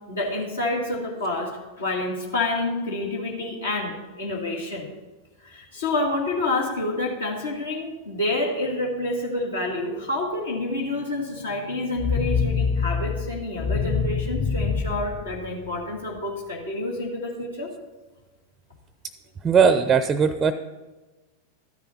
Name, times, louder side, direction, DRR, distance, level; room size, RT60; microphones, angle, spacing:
voice 1, 0.1-4.9 5.4-17.7, left 2 dB, 70° left, -1 dB, 2.0 m, -28 dB
sound 1, 12.0-16.0, left 5 dB, 25° left, 0.7 m, -26 dB
voice 2, 19.4-20.5, right 6 dB, 20° right, 12 dB, 0.5 m, -18 dB
13.5 x 10.5 x 4.3 m, 1.2 s
figure-of-eight pair, 90°, 0 cm